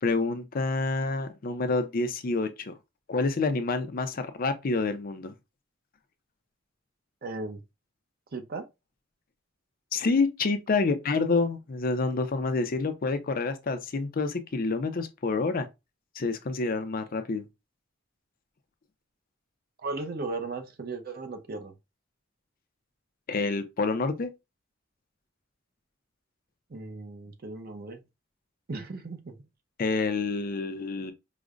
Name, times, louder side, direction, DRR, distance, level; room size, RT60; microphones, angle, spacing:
voice 1, 0.0-2.7 3.1-5.3 9.9-15.7 16.2-17.4 23.3-24.3 29.8-31.1, left 3 dB, 45° left, 0.5 m, -28 dB
voice 2, 7.2-7.6 8.3-8.7 19.8-21.7 26.7-28.0 28.7-29.4, right 3 dB, 50° right, 0.6 m, -36 dB
5.0 x 2.1 x 2.4 m
head